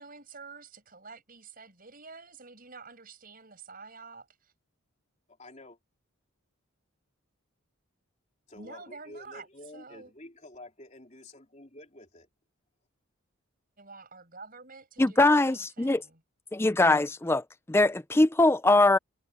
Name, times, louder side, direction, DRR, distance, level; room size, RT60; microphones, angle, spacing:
voice 1, 0.0-4.5 8.5-9.5 9.7-10.1 13.8-16.2, right 4 dB, 40° right, 7.4 m, -48 dB
voice 2, 5.4-5.8 8.5-12.3, left 1 dB, 30° left, 3.8 m, -49 dB
voice 3, 15.0-16.0 16.5-19.0, left 2 dB, 10° left, 0.4 m, -22 dB
head